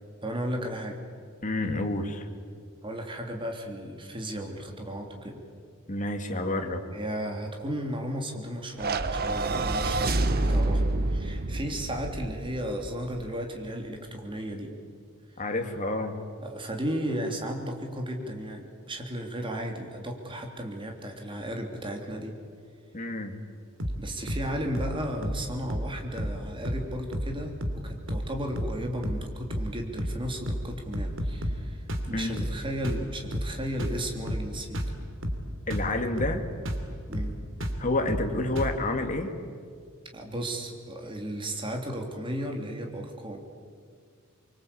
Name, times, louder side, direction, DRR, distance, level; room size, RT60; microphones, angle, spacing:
voice 1, 0.2-1.0 2.8-5.4 6.9-10.8 11.1-14.7 16.4-22.4 24.0-34.8 37.1-37.4 40.1-43.4, equal, 25° right, 2 dB, 3.3 m, -34 dB
voice 2, 1.4-2.3 5.9-6.8 15.4-16.2 22.9-23.4 32.1-32.5 35.7-36.4 37.8-39.3, left 2 dB, 35° left, 4 dB, 2.3 m, -29 dB
sound 1, 8.8-13.2, right 2 dB, 50° right, 1.1 m, -28 dB
sound 2, 23.8-24.0 24.3-24.5 24.7-25.0 25.2-25.4 25.7-25.9 26.2-26.4 26.6-26.9 27.1-27.3 27.6-27.8 28.1-28.3 28.6-28.8 29.0-29.3 29.5-29.7 30.0-30.2 30.5-30.7 30.9-31.6 31.9-32.1 32.4-32.6 32.8-33.1 33.3-33.5 33.8-34.0 34.3-34.5 34.7-35.0 35.2-35.4 35.7-35.9 36.2-36.4 36.7-36.9 37.1-37.3 37.6-37.8 38.1-38.3 38.6-38.8, equal, 65° right, 2.8 m, -31 dB
24.5 x 24.0 x 8.6 m, 2.1 s
head